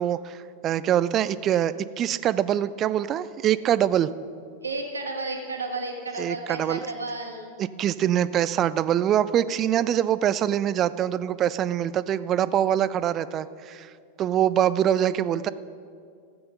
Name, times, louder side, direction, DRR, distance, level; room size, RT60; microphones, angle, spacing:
voice 1, 0.0-4.1 6.2-6.8 7.6-13.9 14.2-15.5, right 10 dB, 30° right, 16 dB, 0.4 m, -24 dB
voice 2, 4.6-7.5, right 2 dB, 75° right, 1 dB, 1.8 m, -32 dB
14.5 x 8.9 x 5.2 m, 2.3 s
figure-of-eight pair, 90°, 0 cm